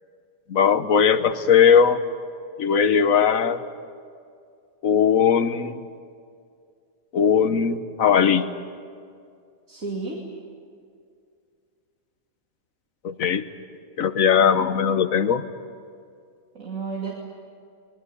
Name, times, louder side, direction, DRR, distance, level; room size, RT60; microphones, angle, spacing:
voice 1, 0.5-2.0 2.6-3.6 4.8-5.8 7.1-8.4 13.0-13.5 14.0-15.4, left 7 dB, 75° left, 11 dB, 1.4 m, -19 dB
voice 2, 9.7-10.2 16.5-17.1, right 4 dB, 70° right, -1 dB, 3.1 m, -31 dB
23.5 x 21.0 x 9.8 m, 2.3 s
omnidirectional pair, 1.5 m